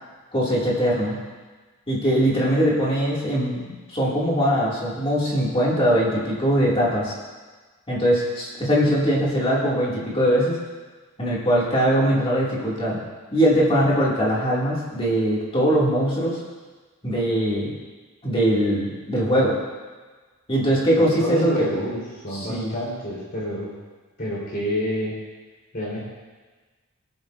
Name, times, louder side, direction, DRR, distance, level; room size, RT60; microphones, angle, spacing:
voice 1, 0.3-1.2 1.9-7.1 7.9-10.6 11.2-13.0 13.3-16.4 17.0-17.7 18.2-19.6 20.5-21.7 22.3-22.8, equal, 25° left, -6 dB, 2.5 m, -21 dB
voice 2, 21.0-23.7 24.2-25.2 25.7-26.0, equal, 45° left, -6 dB, 4.0 m, -28 dB
19.0 x 8.8 x 2.6 m, 1.3 s
head